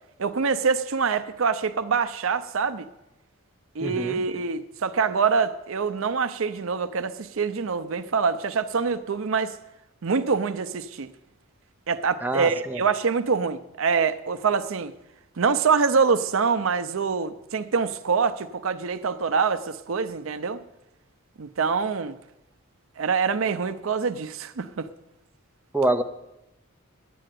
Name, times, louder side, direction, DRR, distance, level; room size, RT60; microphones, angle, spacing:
voice 1, 0.2-2.9 3.7-9.6 10.0-11.1 11.9-14.9 15.4-20.6 21.4-22.2 23.0-24.9, right 5 dB, 65° right, 0.6 m, -25 dB
voice 2, 3.8-4.2 12.2-12.8 25.7-26.0, right 1 dB, 10° right, 0.6 m, -25 dB
10.0 x 7.7 x 9.2 m
head